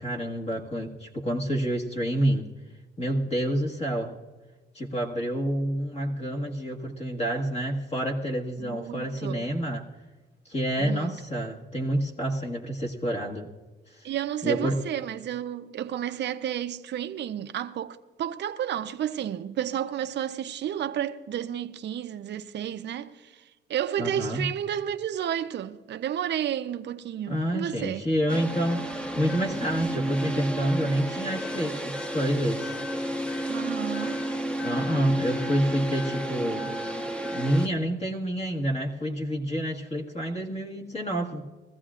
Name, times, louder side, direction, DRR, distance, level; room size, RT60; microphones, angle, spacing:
voice 1, 0.0-2.5 3.0-4.1 4.7-9.9 10.4-13.5 13.9-14.1 14.4-14.8 24.0-24.4 27.3-28.9 29.2-32.8 34.6-36.7 37.3-41.4, equal, 30° left, 1.7 m, -28 dB
voice 2, 8.6-9.5 10.8-11.1 14.0-28.0 33.5-34.2, right 10 dB, 60° right, 0.7 m, -31 dB
sound 1, 28.3-37.7, equal, 5° left, 1.0 m, -32 dB
21.0 x 15.0 x 2.5 m
cardioid pair, 90°, 20 cm